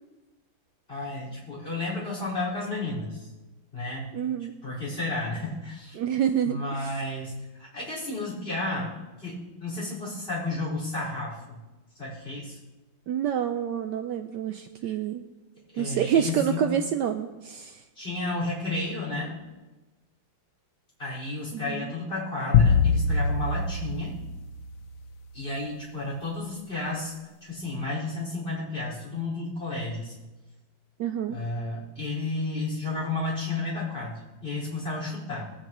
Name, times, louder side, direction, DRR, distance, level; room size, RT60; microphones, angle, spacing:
voice 1, 0.9-3.3 3.7-4.1 4.6-6.0 6.4-11.6 11.9-12.6 15.7-16.8 17.9-19.4 21.0-24.2 25.3-27.1 27.4-30.1 31.3-35.5, left 2 dB, 30° left, -5 dB, 5.1 m, -32 dB
voice 2, 4.1-4.5 5.9-6.6 13.1-15.2 15.8-17.8 21.5-21.9 31.0-31.4, right 9 dB, 70° right, 7 dB, 1.1 m, -27 dB
sound 1, 22.5-25.0, left 5 dB, 60° left, 0.9 m, -23 dB
21.0 x 8.8 x 3.1 m, 1.2 s
omnidirectional pair, 2.1 m